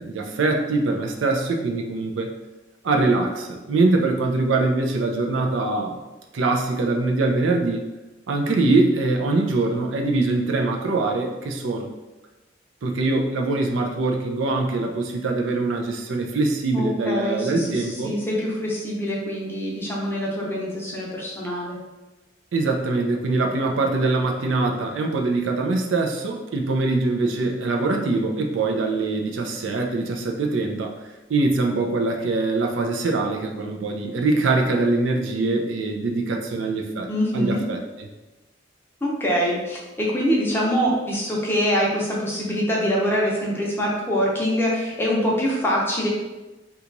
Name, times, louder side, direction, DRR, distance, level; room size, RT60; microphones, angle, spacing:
voice 1, 0.0-2.3 2.8-6.0 6.3-7.8 8.3-11.9 12.8-18.1 22.5-30.9 31.3-38.1, right 3 dB, 85° right, 3 dB, 0.4 m, -23 dB
voice 2, 16.7-21.8 37.1-37.6 39.0-46.1, equal, 10° left, -4 dB, 0.6 m, -24 dB
2.9 x 2.3 x 3.8 m, 1.1 s
head